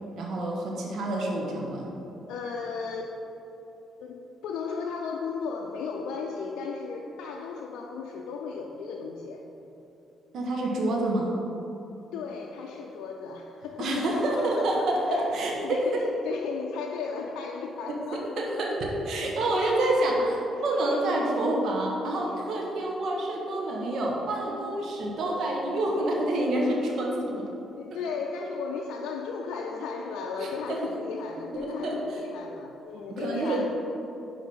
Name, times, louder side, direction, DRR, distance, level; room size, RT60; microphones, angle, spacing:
voice 1, 0.1-1.9 10.3-11.4 13.8-16.0 17.9-27.5 30.4-30.8 31.6-32.2 33.2-33.6, right 1 dB, 70° right, -1 dB, 1.4 m, -28 dB
voice 2, 2.3-3.1 4.0-9.4 12.1-18.7 20.6-21.1 22.3-22.4 27.7-33.6, left 5 dB, 85° left, 0 dB, 0.4 m, -35 dB
6.0 x 4.7 x 5.5 m, 3.0 s
cardioid pair, 90°, 0 cm